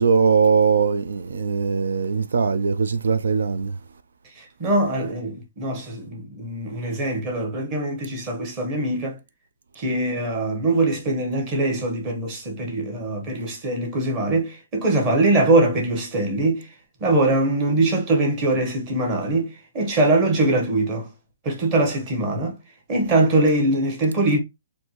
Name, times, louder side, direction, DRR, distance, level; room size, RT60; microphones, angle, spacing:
voice 1, 0.0-3.8, right 5 dB, 80° right, 0.4 m, -20 dB
voice 2, 4.3-9.2 9.7-16.7 17.0-21.1 21.4-22.6 22.9-24.4, right 2 dB, 20° right, 1.0 m, -22 dB
4.4 x 2.6 x 2.9 m
hypercardioid pair, 175°, 0 cm